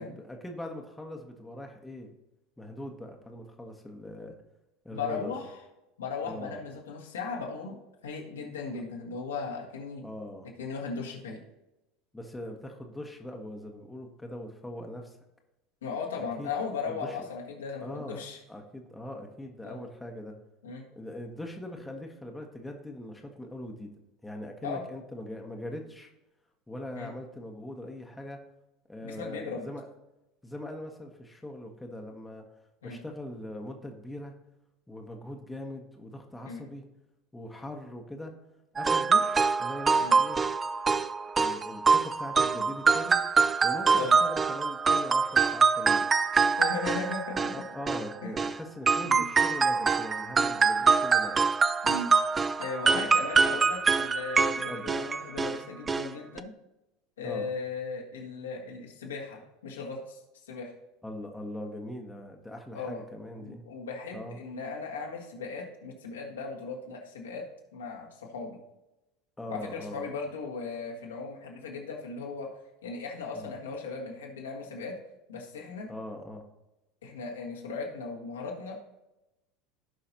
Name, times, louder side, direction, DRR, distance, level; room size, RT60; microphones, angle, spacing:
voice 1, 0.0-2.1 2.6-4.3 4.8-5.4 6.2-6.6 10.0-10.5 12.1-15.2 16.2-16.5 16.8-17.2 17.8-18.2 18.5-20.3 20.9-23.9 24.2-26.1 26.7-28.4 28.9-29.9 30.4-32.4 32.8-34.3 34.9-36.9 37.3-38.3 38.7-40.4 41.4-43.2 43.6-46.1 47.5-51.5 52.9-53.1 54.7-55.0 57.2-57.5 61.0-63.6 64.1-64.4 69.4-70.1 73.3-73.5 75.9-76.4, left 1 dB, 10° left, 2 dB, 1.4 m, -41 dB
voice 2, 4.9-5.6 6.0-7.8 8.0-10.0 10.6-11.4 15.8-18.4 19.6-19.8 20.6-20.9 24.6-24.8 26.9-27.1 29.0-29.7 32.8-33.0 36.4-36.6 40.0-40.1 43.9-44.1 46.6-47.7 48.2-48.3 49.0-49.2 51.8-52.1 52.6-56.5 57.2-60.7 62.7-63.0 63.4-67.5 67.7-68.6 69.5-72.5 72.8-75.0 75.3-75.9 77.0-78.7, left 4 dB, 75° left, -1 dB, 1.9 m, -37 dB
sound 1, 38.8-48.6 48.9-55.6 55.9-56.1 56.4-56.5, right 5 dB, 20° right, 0.4 m, -25 dB
16.5 x 5.6 x 2.9 m, 0.96 s
figure-of-eight pair, 75°, 0 cm